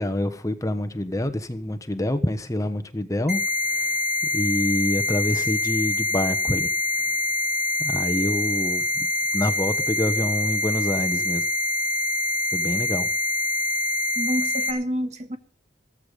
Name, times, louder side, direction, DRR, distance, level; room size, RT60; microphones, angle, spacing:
voice 1, 0.0-4.0 4.3-6.7 7.0-7.2 7.8-9.1 9.3-11.5 12.5-13.1, left 1 dB, 20° left, 1.1 m, -27 dB
sound 1, 3.3-14.7, left 2 dB, 55° right, 3.7 m, -25 dB
voice 2, 14.1-15.4, equal, 40° right, 1.7 m, -28 dB
15.0 x 15.0 x 5.2 m
head